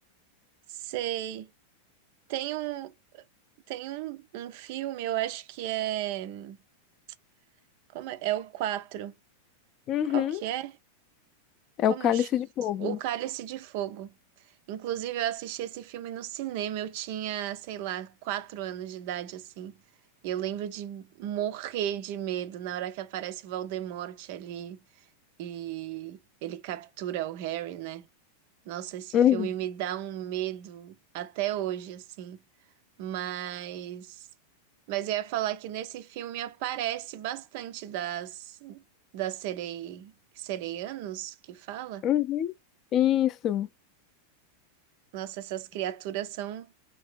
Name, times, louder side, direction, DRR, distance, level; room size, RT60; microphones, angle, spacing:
voice 1, 0.7-1.5 2.3-3.2 3.7-6.6 7.9-9.1 10.1-10.8 11.9-12.3 12.8-14.1 14.7-19.7 20.2-24.8 25.4-28.1 28.7-32.4 33.0-34.3 34.9-38.8 39.1-42.1 45.1-46.7, right 12 dB, 50° right, 0.3 m, -34 dB
voice 2, 9.9-10.4 11.8-13.0 29.1-29.5 42.0-42.5 42.9-43.7, left 11 dB, 35° left, 0.3 m, -25 dB
2.8 x 2.6 x 3.2 m
figure-of-eight pair, 90°, 0 cm